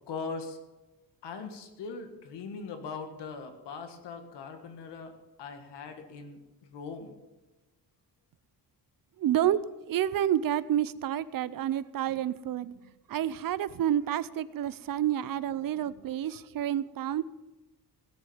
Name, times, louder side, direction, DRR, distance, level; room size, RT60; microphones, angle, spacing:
voice 1, 0.1-0.6 1.2-5.1 5.4-7.2, left 4 dB, 80° left, 6 dB, 1.9 m, -40 dB
voice 2, 9.2-9.6 9.9-12.7 13.1-17.2, right 11 dB, 55° right, 17 dB, 0.6 m, -29 dB
17.5 x 6.6 x 7.1 m, 1.1 s
cardioid pair, 120°, 41 cm